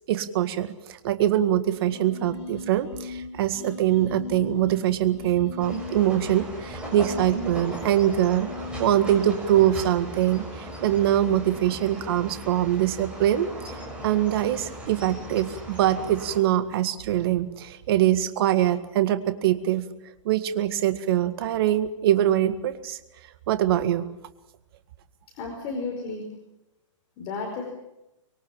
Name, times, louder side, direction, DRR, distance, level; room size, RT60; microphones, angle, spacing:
voice 1, 0.1-13.5 14.0-19.9 20.3-23.0 23.5-24.1, right 12 dB, 45° right, 10 dB, 1.9 m, -23 dB
sound 1, 1.7-9.3, left 4 dB, 55° left, 3.6 m, -39 dB
sound 2, 5.6-16.4, right 1 dB, 5° right, 6.5 m, -38 dB
voice 2, 25.4-26.3 27.2-27.6, left 4 dB, 30° left, 1 dB, 4.8 m, -32 dB
25.0 x 22.5 x 7.4 m, 0.93 s
hypercardioid pair, 160°, 17 cm